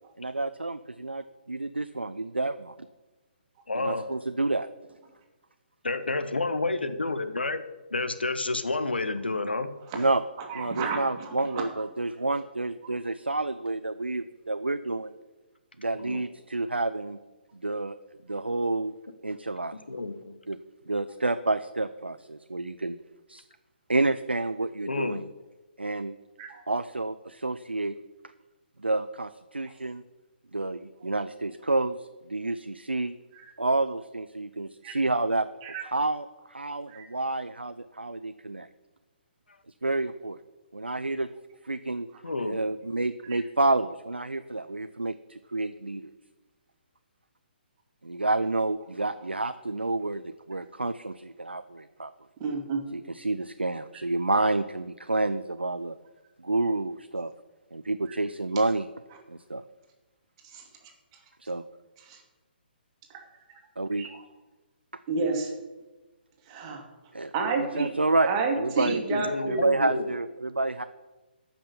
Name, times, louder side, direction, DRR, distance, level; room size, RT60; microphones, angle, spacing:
voice 1, 0.2-2.9 3.7-4.7 9.9-10.2 10.5-15.1 15.8-17.2 17.5-18.0 18.2-18.9 19.2-19.7 20.5-20.6 20.9-23.0 23.3-23.4 23.9-25.3 25.8-26.2 26.7-28.0 28.8-30.0 30.5-33.2 33.6-35.5 35.8-38.7 39.8-40.4 40.7-41.3 41.7-42.1 42.4-46.1 48.0-52.1 52.9-55.9 56.4-57.3 57.7-58.9 59.3-59.6 61.4-61.6 63.8-64.0 67.1-67.3 67.8-68.3 68.5-69.0 69.5-70.8, right 2 dB, 80° right, 10 dB, 0.5 m, -29 dB
voice 2, 3.7-4.1 5.8-7.6 7.9-9.7 15.9-16.2 19.9-20.3 24.9-25.2 42.2-42.6 68.9-70.1, left 3 dB, 75° left, 10 dB, 1.1 m, -30 dB
voice 3, 10.5-11.6 26.4-26.6 33.3-33.5 34.8-34.9 35.6-35.8 36.9-37.0 42.3-42.4 52.4-52.8 60.4-60.6 62.1-62.2 63.5-63.6 64.0-64.1 65.1-65.5 66.5-66.8 67.3-67.9 68.3-69.6, right 4 dB, 30° right, 2 dB, 2.2 m, -30 dB
13.5 x 5.9 x 7.0 m, 1.2 s
figure-of-eight pair, 130°, 6 cm